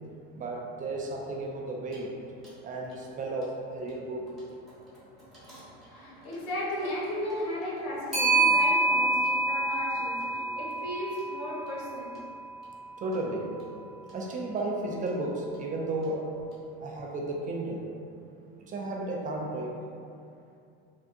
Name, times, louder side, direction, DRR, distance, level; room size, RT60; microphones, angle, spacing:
voice 1, 0.3-2.1 2.6-4.3 13.0-13.6 14.1-16.4 16.8-17.8 18.7-19.7, right 2 dB, 30° right, -1 dB, 0.4 m, -33 dB
Clock, 1.9-2.0 2.4-2.5 5.3-5.6 8.1-12.4, right 2 dB, ahead, 1.2 m, -27 dB
voice 2, 5.9-12.2, left 1 dB, 80° left, -6 dB, 1.0 m, -35 dB
3.5 x 2.2 x 2.6 m, 2.5 s
supercardioid pair, 100°, 29 cm